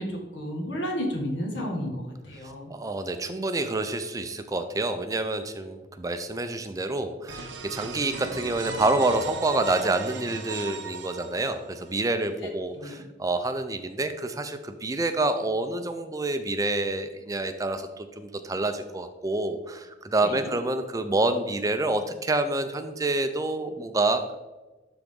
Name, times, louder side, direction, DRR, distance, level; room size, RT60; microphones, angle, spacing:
voice 1, 0.0-2.7 12.4-13.0 20.2-20.5, equal, 80° left, 1 dB, 1.6 m, -32 dB
voice 2, 2.7-12.7 13.2-24.4, right 2 dB, 20° right, 8 dB, 0.4 m, -27 dB
sound 1, 7.3-11.9, right 4 dB, 85° right, 0.8 m, -37 dB
12.0 x 3.9 x 3.7 m, 1.2 s
head